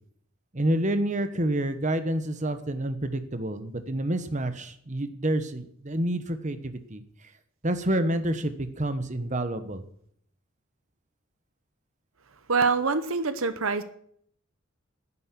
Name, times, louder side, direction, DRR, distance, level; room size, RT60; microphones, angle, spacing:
voice 1, 0.5-7.0 7.6-9.8, right 1 dB, 35° right, 10 dB, 1.2 m, -28 dB
voice 2, 12.5-13.8, right 4 dB, 75° right, 12 dB, 0.9 m, -25 dB
10.5 x 9.9 x 9.8 m, 0.66 s
head